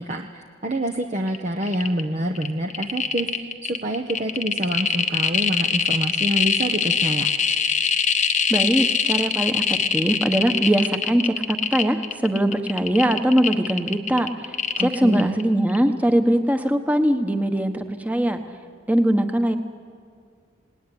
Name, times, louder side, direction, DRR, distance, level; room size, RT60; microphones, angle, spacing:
voice 1, 0.0-7.3 14.8-15.3, right 1 dB, 35° right, 3 dB, 1.0 m, -27 dB
sound 1, 1.3-1.4 1.6-2.0 2.4-15.4 15.7-15.8, left 6 dB, 40° left, 1.1 m, -23 dB
voice 2, 8.5-18.4 18.9-19.6, right 1 dB, 10° right, 7 dB, 1.3 m, -21 dB
27.0 x 19.0 x 10.0 m, 2.2 s
head